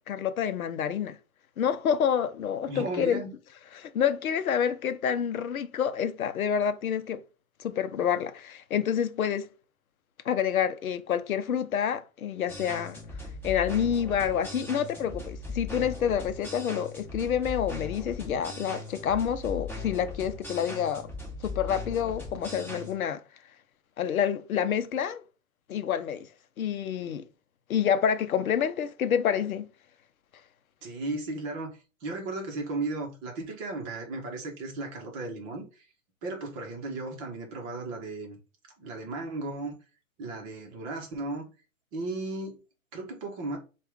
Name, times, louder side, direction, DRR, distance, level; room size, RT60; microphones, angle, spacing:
voice 1, 0.1-1.2 1.6-3.2 3.7-7.2 7.6-9.5 10.3-13.0 13.4-21.1 21.4-23.2 24.0-25.2 25.7-26.3 26.6-27.2 27.7-29.7, left 8 dB, 85° left, 0.7 m, -28 dB
voice 2, 2.7-3.3 30.8-35.8 36.2-38.4 38.8-39.8 40.2-41.5 41.9-42.6 42.9-43.6, right 2 dB, 25° right, 1.0 m, -35 dB
sound 1, 12.5-22.9, left 3 dB, 5° left, 1.5 m, -39 dB
4.5 x 2.5 x 3.4 m
hypercardioid pair, 145°, 41 cm